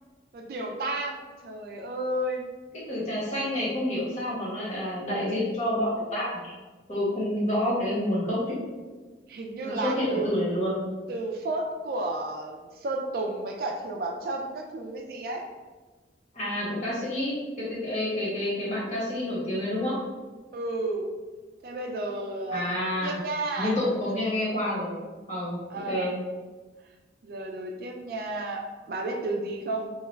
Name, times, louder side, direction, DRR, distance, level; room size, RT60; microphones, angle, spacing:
voice 1, 0.3-2.5 9.3-10.3 11.1-15.4 20.5-21.1 21.6-23.8 25.7-26.1 27.2-29.9, right 2 dB, 50° right, 2 dB, 0.3 m, -32 dB
voice 2, 2.7-6.5 6.9-8.6 8.9-9.0 9.6-10.8 16.3-20.0 22.5-23.2 23.5-25.0 25.3-26.1, left 1 dB, 40° left, -7 dB, 1.2 m, -28 dB
2.9 x 2.3 x 3.2 m, 1.3 s
head